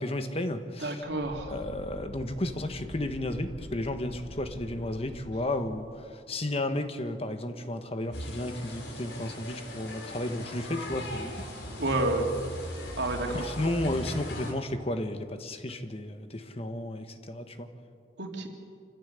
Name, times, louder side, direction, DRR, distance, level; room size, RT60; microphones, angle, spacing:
voice 1, 0.0-1.0 1.5-11.3 13.3-17.7, left 1 dB, 35° left, 8 dB, 1.3 m, -33 dB
voice 2, 0.8-1.5 11.8-12.2 13.0-13.5 18.2-18.5, right 2 dB, 80° right, 2 dB, 3.1 m, -29 dB
sound 1, 1.0-5.9, left 1 dB, 60° left, 3.2 m, -45 dB
sound 2, 8.1-14.5, left 1 dB, 80° left, 4.2 m, -39 dB
27.0 x 15.0 x 8.3 m, 2.3 s
head